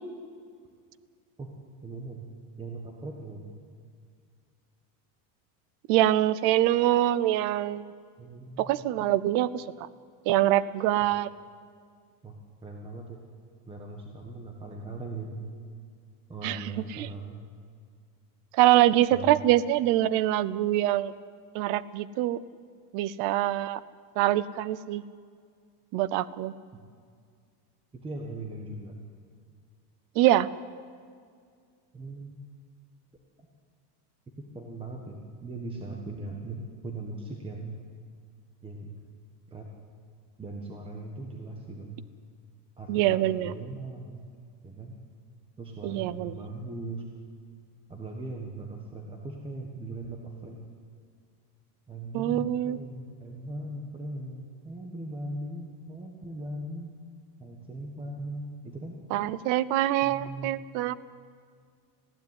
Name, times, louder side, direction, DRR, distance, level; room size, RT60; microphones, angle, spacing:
voice 1, 1.8-2.2 2.6-3.5 8.2-8.9 12.2-12.3 12.6-13.2 13.7-15.4 16.3-17.4 19.1-19.3 27.9-28.9 31.9-32.4 34.5-35.2 35.4-37.8 38.6-39.0 39.5-39.6 40.4-42.0 42.8-44.2 44.6-44.9 45.6-47.0 47.9-50.6 51.9-57.0 57.4-59.0 60.0-60.5, right 2 dB, 10° right, 1 dB, 1.4 m, -39 dB
voice 2, 5.9-7.9 8.6-9.6 10.3-11.3 16.4-17.1 18.5-21.1 21.5-22.4 22.9-23.8 24.2-25.0 25.9-26.5 30.2-30.5 42.9-43.6 45.8-46.4 52.1-52.8 59.1-60.9, right 14 dB, 40° right, 19 dB, 0.6 m, -24 dB
20.0 x 15.5 x 9.7 m, 2.1 s
supercardioid pair, 170°, 48 cm